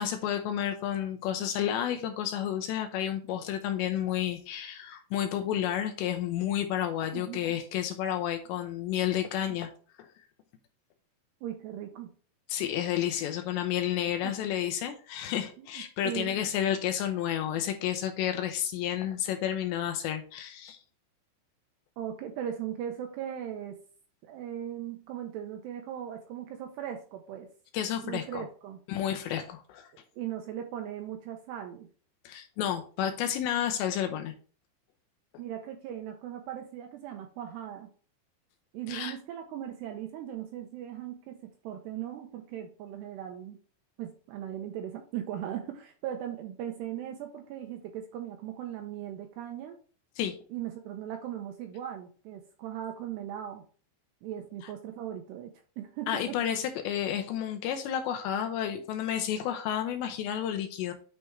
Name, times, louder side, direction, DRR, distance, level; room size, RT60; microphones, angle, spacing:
voice 1, 0.0-9.7 10.0-10.1 12.5-20.8 27.7-28.5 28.9-29.9 32.3-34.3 38.9-39.1 50.2-50.4 56.1-60.9, left 10 dB, 80° left, 6 dB, 2.7 m, -31 dB
voice 2, 11.4-12.1 14.1-14.4 15.6-15.7 16.0-16.3 22.0-23.8 24.2-27.5 28.0-28.8 30.2-31.9 35.4-37.9 38.7-43.6 44.0-49.8 50.5-53.6 54.2-56.4, right 10 dB, 85° right, 4 dB, 2.5 m, -38 dB
9.6 x 3.4 x 4.5 m, 0.41 s
omnidirectional pair, 5.5 m